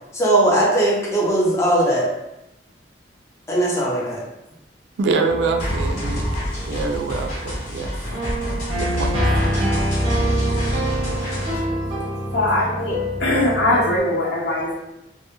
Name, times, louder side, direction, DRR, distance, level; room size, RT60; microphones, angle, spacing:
voice 1, 0.1-2.1 3.5-4.2, right 1 dB, 15° left, -4 dB, 0.5 m, -19 dB
voice 2, 5.0-6.3 6.6-7.9 8.8-9.2, right 4 dB, 85° right, 4 dB, 0.3 m, -24 dB
sound 1, 5.3-14.0, equal, 30° right, 0.5 m, -25 dB
sound 2, 5.6-11.6, equal, 45° left, 0.8 m, -28 dB
voice 3, 12.3-14.7, left 1 dB, 75° left, -5 dB, 0.8 m, -21 dB
2.1 x 2.0 x 2.9 m, 0.89 s
head